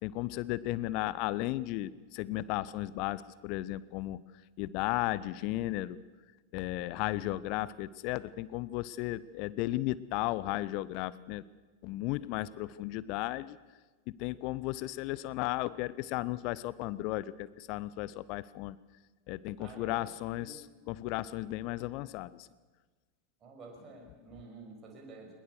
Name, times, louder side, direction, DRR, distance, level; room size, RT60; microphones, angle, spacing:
voice 1, 0.0-4.2 4.6-6.0 6.5-11.4 11.8-13.6 14.1-18.8 19.3-22.5, left 17 dB, 45° left, 19 dB, 0.6 m, -35 dB
voice 2, 6.9-7.2 19.6-20.6 23.4-25.3, right 3 dB, 25° right, 0 dB, 6.1 m, -50 dB
21.5 x 21.0 x 6.8 m, 1.3 s
figure-of-eight pair, 90°, 0 cm